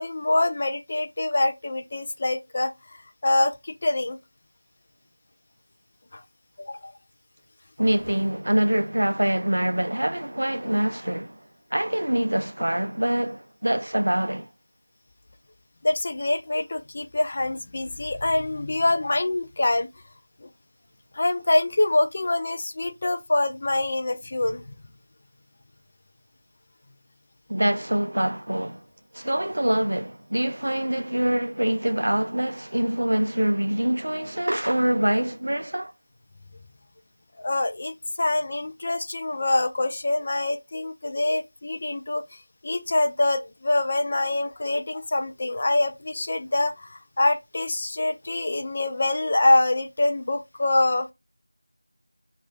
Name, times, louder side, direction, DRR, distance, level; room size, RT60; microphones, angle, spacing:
voice 1, 0.0-2.7 3.2-4.2 6.1-6.2 6.6-6.9 15.8-19.9 20.4-20.5 21.1-24.7 37.4-42.2 42.6-51.1, left 2 dB, 25° left, 0.3 m, -25 dB
voice 2, 7.8-11.4 11.7-14.5 27.5-28.8 29.1-35.9, right 1 dB, 60° right, 0.3 m, -25 dB
3.0 x 2.3 x 3.6 m
figure-of-eight pair, 175°, 0 cm